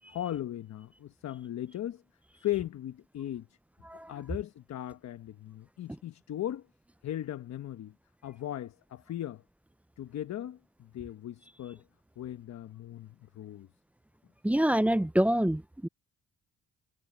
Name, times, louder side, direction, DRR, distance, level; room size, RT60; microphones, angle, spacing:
voice 1, 0.1-2.0 2.4-3.5 4.1-6.7 7.0-7.9 8.2-9.4 10.0-11.8 12.2-13.7, left 12 dB, 65° left, 1.1 m, -37 dB
voice 2, 14.4-15.9, right 1 dB, 5° right, 0.4 m, -26 dB
cardioid pair, 90°, 30 cm